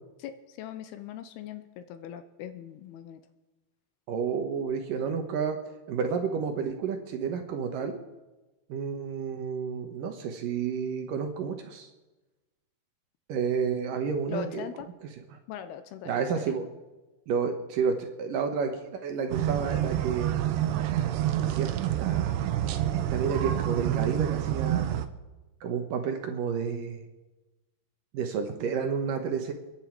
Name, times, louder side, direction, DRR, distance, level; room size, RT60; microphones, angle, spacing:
voice 1, 0.2-3.2 14.3-14.9 15.5-16.4, left 9 dB, 80° left, 10 dB, 2.7 m, -40 dB
voice 2, 4.1-5.6 5.9-8.0 8.7-11.9 13.3-14.6 16.1-16.6 17.3-20.6 21.4-21.7 22.0-22.3 23.1-24.9 25.6-27.0 28.1-29.5, right 6 dB, 65° right, 5 dB, 2.5 m, -30 dB
sound 1, 19.3-25.1, right 12 dB, 85° right, 3.0 m, -28 dB
29.0 x 11.0 x 4.6 m, 1.1 s
omnidirectional pair, 4.8 m